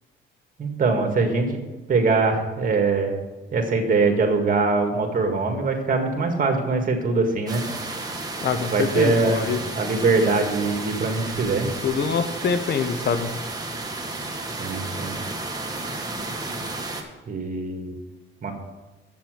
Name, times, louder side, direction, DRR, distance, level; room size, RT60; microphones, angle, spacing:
voice 1, 0.6-1.6 1.9-3.2 3.5-7.6 8.7-9.5 9.7-11.7 14.6-15.2 17.3-17.9 18.4-18.5, right 3 dB, 45° right, 4 dB, 1.9 m, -22 dB
sound 1, 7.5-17.0, right 2 dB, 20° right, 1.5 m, -32 dB
voice 2, 8.4-9.6 11.8-13.3, left 6 dB, 60° left, 10 dB, 0.8 m, -24 dB
7.6 x 7.2 x 6.3 m, 1.1 s
cardioid pair, 90°, 20 cm